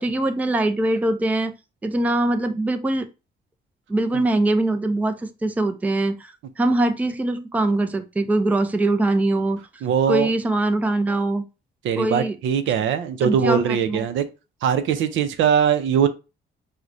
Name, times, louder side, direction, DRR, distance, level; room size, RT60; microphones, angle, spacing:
voice 1, 0.0-1.5 1.8-3.1 3.9-9.6 10.1-11.4 12.0-12.4 13.2-14.0, right 2 dB, 10° right, 0.4 m, -22 dB
voice 2, 9.8-10.3 11.8-14.3 14.6-16.1, right 8 dB, 75° right, 0.5 m, -21 dB
4.6 x 2.1 x 2.5 m
cardioid pair, 90°, 20 cm